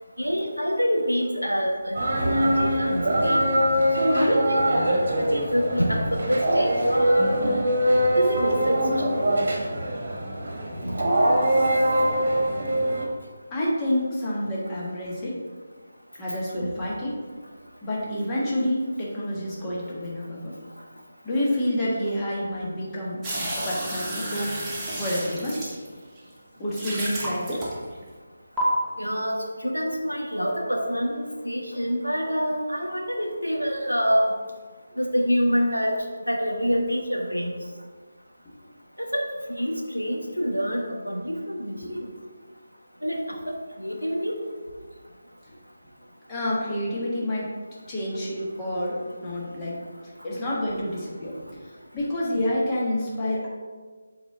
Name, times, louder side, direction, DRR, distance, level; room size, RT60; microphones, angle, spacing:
voice 1, 0.2-3.4 4.0-4.7 5.1-7.3 8.1-8.8 10.8-11.0 16.6-16.7 29.0-34.3 35.0-36.0 36.2-37.5 39.1-39.2 39.5-42.1 43.0-44.4, equal, 90° left, 0 dB, 1.3 m, -26 dB
sound 1, 1.9-13.1, right 1 dB, 45° right, 1.4 m, -23 dB
voice 2, 13.5-15.3 16.2-17.1 17.8-20.5 21.2-24.5 24.9-25.5 26.6-27.6 38.4-38.5 41.8-41.9 46.3-47.5 47.9-49.7 50.0-51.6 51.9-53.5, left 1 dB, 15° left, -6 dB, 1.5 m, -28 dB
sound 2, 23.2-26.2 26.7-28.0 28.6-28.7, right 1 dB, 10° right, 1.1 m, -32 dB
7.8 x 4.3 x 3.7 m, 1.5 s
figure-of-eight pair, 155°, 0 cm